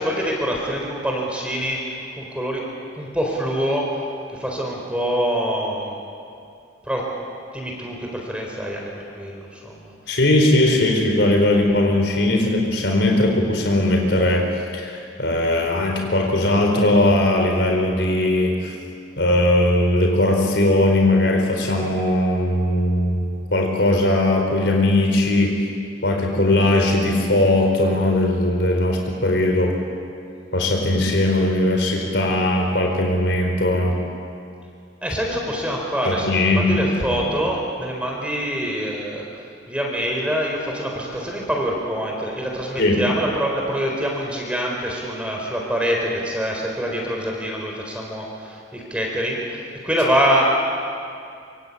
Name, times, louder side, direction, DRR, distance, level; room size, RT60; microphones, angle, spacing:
voice 1, 0.0-1.8 2.2-2.6 3.0-3.9 4.4-5.9 6.8-7.0 7.5-8.9 9.2-9.9 35.0-39.2 39.7-50.4, equal, 5° right, -1 dB, 4.3 m, -25 dB
voice 2, 10.1-18.8 19.2-25.6 26.0-29.7 30.5-34.0 36.0-37.2 42.8-43.1, left 1 dB, 70° left, 1 dB, 4.5 m, -19 dB
26.0 x 25.5 x 8.6 m, 2.4 s
head